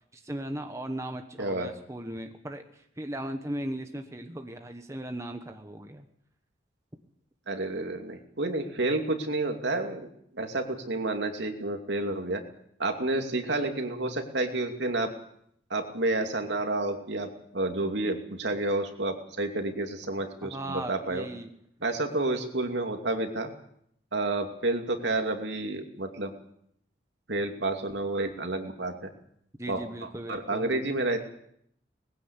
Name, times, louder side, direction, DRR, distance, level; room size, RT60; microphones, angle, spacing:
voice 1, 0.1-6.1 20.4-21.5 29.6-30.8, right 1 dB, 15° right, 5 dB, 1.3 m, -37 dB
voice 2, 1.4-1.7 7.5-10.1 10.3-12.4 12.8-15.1 15.7-21.3 21.8-23.5 24.1-26.3 27.3-29.1 29.7-29.8 30.3-31.2, right 2 dB, 70° right, 4 dB, 2.6 m, -30 dB
20.0 x 16.0 x 8.4 m, 0.70 s
head